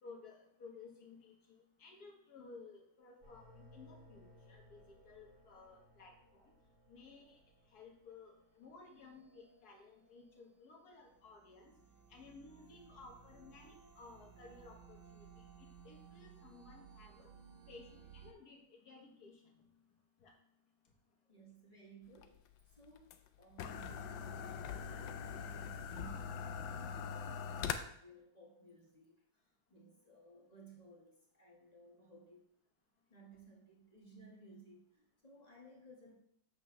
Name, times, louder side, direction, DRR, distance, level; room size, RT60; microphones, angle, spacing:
voice 1, 0.0-6.5 6.9-7.4 7.7-11.7 12.1-15.3 15.6-17.3 17.7-19.4 20.2-20.3, left 4 dB, 55° left, 0 dB, 1.8 m, -56 dB
sound 1, 3.2-18.3, right 5 dB, 40° right, 0.7 m, -61 dB
voice 2, 21.2-22.4 22.6-32.4 33.1-36.2, right 3 dB, 25° left, -3 dB, 1.3 m, -59 dB
sound 2, 22.2-27.7, left 7 dB, 85° left, 1.3 m, -42 dB
7.7 x 6.9 x 3.2 m, 0.71 s
omnidirectional pair, 2.0 m